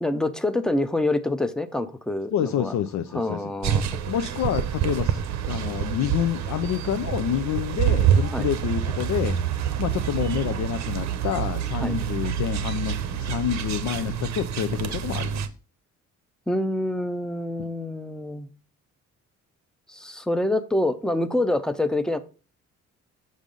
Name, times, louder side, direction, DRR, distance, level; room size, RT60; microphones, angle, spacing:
voice 1, 0.0-2.7 3.1-4.0 8.3-8.5 11.8-12.0 16.5-18.5 19.9-22.2, left 1 dB, ahead, 0.6 m, -26 dB
voice 2, 2.3-3.5 4.1-9.4 9.8-15.4, left 10 dB, 70° left, 0.5 m, -28 dB
sound 1, 3.6-15.5, right 9 dB, 65° right, 0.8 m, -27 dB
6.2 x 5.3 x 3.8 m
cardioid pair, 90°, 30 cm